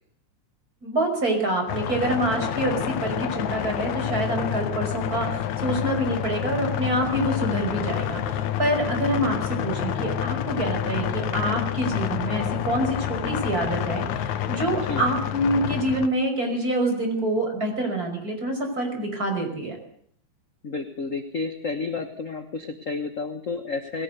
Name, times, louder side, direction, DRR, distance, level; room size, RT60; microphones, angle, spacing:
voice 1, 0.8-19.8, right 1 dB, 30° right, 3 dB, 5.9 m, -26 dB
sound 1, 1.7-16.1, left 10 dB, 80° left, 2.5 m, -28 dB
voice 2, 14.7-15.0 20.6-24.0, left 4 dB, 45° left, 7 dB, 1.0 m, -31 dB
20.0 x 17.5 x 8.1 m, 0.66 s
omnidirectional pair, 3.4 m